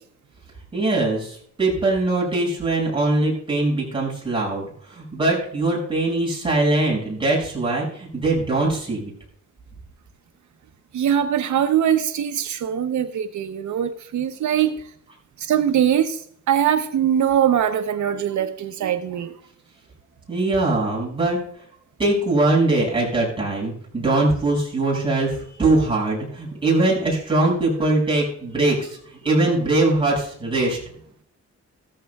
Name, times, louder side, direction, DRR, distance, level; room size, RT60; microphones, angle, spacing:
voice 1, 0.7-9.1 20.3-21.4 22.0-30.8, right 2 dB, 15° right, -4 dB, 5.9 m, -22 dB
voice 2, 10.9-14.9 15.4-19.3, right 9 dB, 80° right, 7 dB, 0.8 m, -22 dB
16.0 x 14.0 x 2.3 m, 0.64 s
wide cardioid pair, 145°, 29 cm